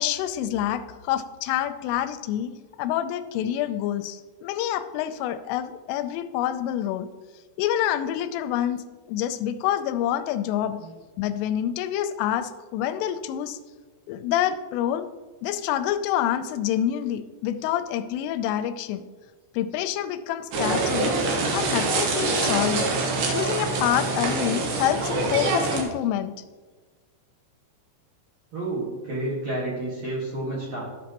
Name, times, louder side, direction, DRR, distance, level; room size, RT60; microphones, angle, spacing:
voice 1, 0.0-2.5 2.8-7.1 7.6-10.8 11.2-13.6 14.1-15.1 15.4-19.0 19.5-21.2 21.5-22.9 23.3-26.3, left 11 dB, 90° left, 11 dB, 3.1 m, -27 dB
sound 1, 20.5-25.8, right 3 dB, 75° right, 2.0 m, -25 dB
voice 2, 28.5-30.8, right 2 dB, 55° right, -7 dB, 2.0 m, -30 dB
13.0 x 6.2 x 2.9 m, 1.3 s
omnidirectional pair, 5.6 m